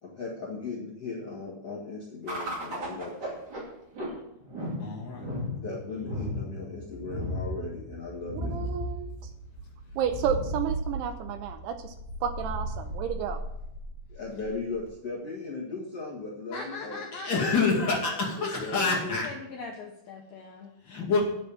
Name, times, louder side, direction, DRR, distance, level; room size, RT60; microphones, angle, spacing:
voice 1, 0.0-3.3 5.6-8.6 14.1-17.0 18.3-19.2, left 3 dB, 55° left, -4 dB, 1.8 m, -37 dB
sound 1, 2.3-14.9, equal, 30° right, 2.0 m, -35 dB
voice 2, 4.8-5.2 17.1-19.3 20.8-21.2, left 4 dB, 35° left, -3 dB, 2.2 m, -27 dB
voice 3, 8.5-9.1 10.0-11.9 12.2-13.4, right 8 dB, 85° right, 7 dB, 2.3 m, -31 dB
voice 4, 16.5-18.0 18.8-20.7, left 4 dB, 80° left, 1 dB, 2.0 m, -41 dB
9.4 x 7.0 x 7.2 m, 0.81 s
omnidirectional pair, 5.6 m